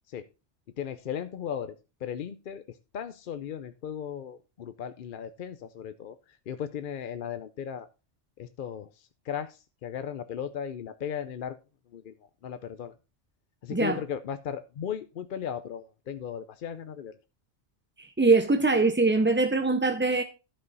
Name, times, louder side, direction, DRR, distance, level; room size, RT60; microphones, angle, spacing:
voice 1, 0.8-7.9 8.4-11.6 11.9-12.1 12.4-12.9 13.6-17.2, left 8 dB, 55° left, 0.7 m, -36 dB
voice 2, 18.0-20.2, right 3 dB, 15° right, 0.4 m, -23 dB
12.5 x 5.5 x 3.9 m
omnidirectional pair, 1.2 m